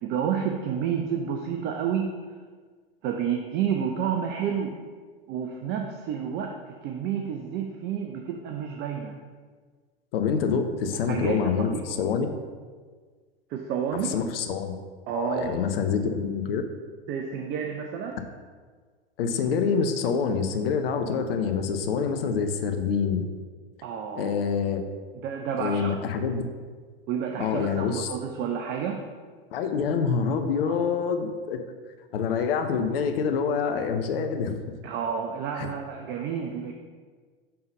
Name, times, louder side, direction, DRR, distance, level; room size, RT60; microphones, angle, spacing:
voice 1, 0.0-2.2 3.0-4.8 5.3-9.2 10.9-11.4 11.7-12.0 13.5-14.1 15.1-15.6 17.1-18.2 23.8-24.4 25.1-26.0 27.1-29.0 30.7-30.8 34.8-36.7, right 7 dB, 35° right, 3 dB, 0.6 m, -30 dB
voice 2, 10.1-12.3 14.1-14.8 15.1-16.6 19.2-23.2 24.2-24.8 25.6-26.4 27.4-28.1 29.5-31.6 32.1-34.5 35.6-35.7, left 6 dB, 65° left, 6 dB, 0.7 m, -26 dB
5.6 x 3.8 x 5.3 m, 1.5 s
hypercardioid pair, 95°, 31 cm